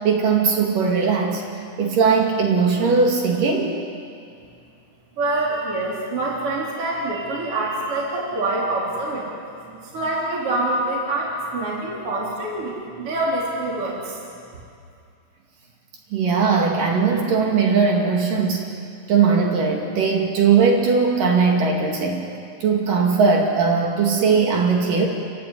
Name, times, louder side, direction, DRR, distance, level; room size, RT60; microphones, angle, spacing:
voice 1, 0.0-1.4 1.8-3.8 16.1-18.7 19.1-22.3 22.6-25.1, right 5 dB, 75° right, 0 dB, 3.8 m, -19 dB
voice 2, 5.2-9.3 9.6-14.2, right 2 dB, 40° right, -4 dB, 4.3 m, -25 dB
29.5 x 15.5 x 9.9 m, 2.4 s
omnidirectional pair, 3.9 m